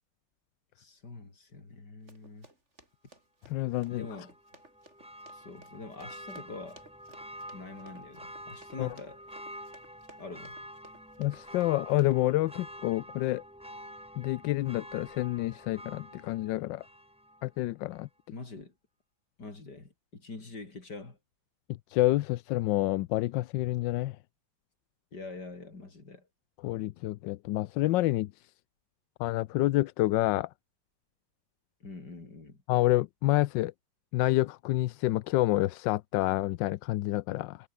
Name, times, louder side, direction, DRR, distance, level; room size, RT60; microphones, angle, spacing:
voice 1, 0.8-2.5 3.9-4.3 5.3-6.8 7.5-9.2 10.2-10.6 18.3-18.7 19.4-21.2 25.1-26.3 31.8-32.6, left 3 dB, 65° left, 5.0 m, -45 dB
Run, 2.1-12.2, right 2 dB, 40° right, 5.3 m, -58 dB
voice 2, 3.5-4.1 8.8-8.9 11.2-13.4 14.2-16.8 17.4-18.1 21.9-24.1 26.6-28.3 29.2-30.5 32.7-33.7 34.1-37.6, left 16 dB, 90° left, 1.3 m, -28 dB
Church bell, 3.9-17.5 17.9-18.0, equal, 5° right, 4.8 m, -48 dB
omnidirectional pair, 1.9 m